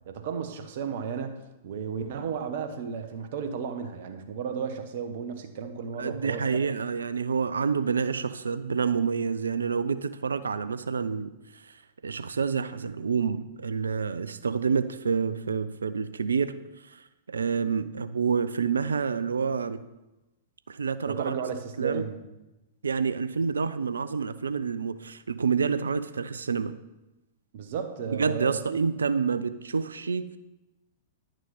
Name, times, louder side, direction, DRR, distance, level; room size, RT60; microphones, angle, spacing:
voice 1, 0.1-6.6 21.1-22.2 27.5-28.8, right 6 dB, 55° right, 1.2 m, -34 dB
voice 2, 6.0-11.3 11.7-11.8 12.0-16.5 17.3-19.8 20.7-21.4 21.8-22.1 22.8-26.7 28.1-30.3, right 5 dB, 75° right, 0.5 m, -28 dB
11.0 x 6.2 x 4.2 m
figure-of-eight pair, 105°, 0 cm